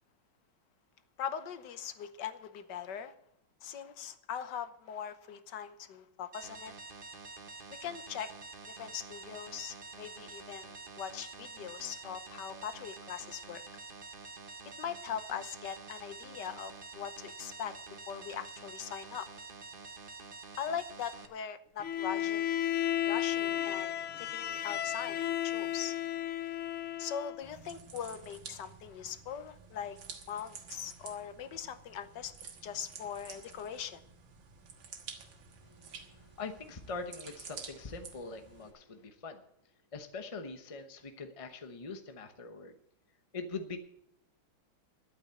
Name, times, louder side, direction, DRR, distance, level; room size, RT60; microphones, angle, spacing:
voice 1, 1.2-3.1 3.6-6.7 7.8-8.3 8.7-13.6 14.8-17.7 18.1-19.3 20.6-22.5 23.1-23.9 24.2-25.9 27.0-30.0 30.3-32.3 32.6-34.0, left 8 dB, 60° left, 11 dB, 1.5 m, -41 dB
sound 1, 6.3-21.3, right 4 dB, 35° right, 1.0 m, -48 dB
Bowed string instrument, 21.8-27.4, left 11 dB, 90° left, 1.8 m, -33 dB
sound 2, 27.4-38.7, right 6 dB, 65° right, 2.1 m, -51 dB
voice 2, 35.6-39.4 39.9-42.7 43.3-43.8, left 4 dB, 40° left, 7 dB, 0.4 m, -43 dB
11.5 x 8.6 x 8.2 m, 0.73 s
omnidirectional pair, 2.3 m